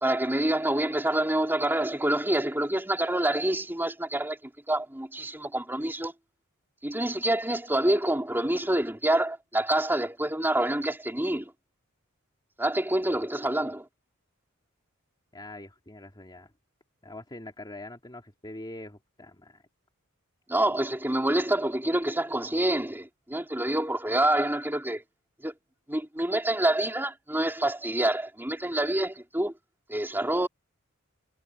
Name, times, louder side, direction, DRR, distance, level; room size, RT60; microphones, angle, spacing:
voice 1, 0.0-4.4 4.7-6.1 6.8-11.5 12.6-13.8 20.5-25.0 25.4-25.5 25.9-29.5 29.9-30.5, right 1 dB, 10° right, 3.0 m, -27 dB
voice 2, 15.3-16.5 17.0-19.6, left 1 dB, 20° left, 2.5 m, -43 dB
head